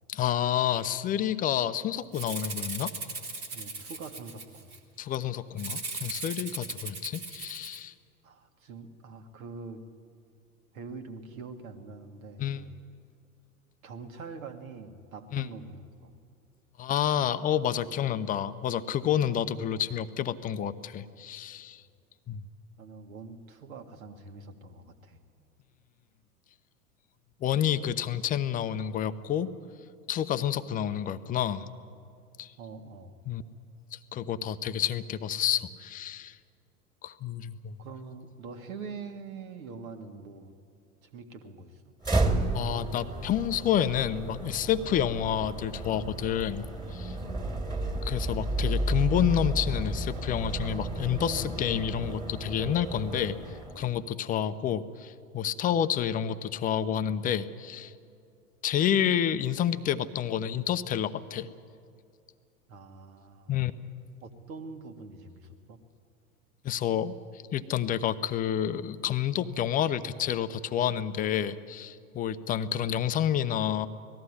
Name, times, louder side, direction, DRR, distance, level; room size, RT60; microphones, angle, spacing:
voice 1, 0.1-2.9 5.0-7.9 12.4-12.6 15.3-15.5 16.8-21.8 22.3-22.4 27.4-29.5 30.1-31.7 32.4-32.5 33.3-33.4 33.9-36.4 37.0-37.8 42.5-47.2 48.0-57.9 58.6-61.5 63.5-63.7 66.6-67.2 67.5-73.9, left 10 dB, 20° left, 13 dB, 0.6 m, -29 dB
Rattle (instrument), 2.1-4.8 5.6-7.8, right 3 dB, 80° right, 2.4 m, -38 dB
voice 2, 3.5-4.7 8.2-9.8 10.7-12.7 13.8-16.2 22.8-25.2 32.6-33.2 37.8-40.5 41.0-41.9 62.7-63.5 64.2-65.8, right 4 dB, 65° right, 5 dB, 1.8 m, -44 dB
sound 1, 42.0-54.0, right 2 dB, 10° right, 2.1 m, -32 dB
19.0 x 14.0 x 9.7 m, 2.4 s
figure-of-eight pair, 90°, 44 cm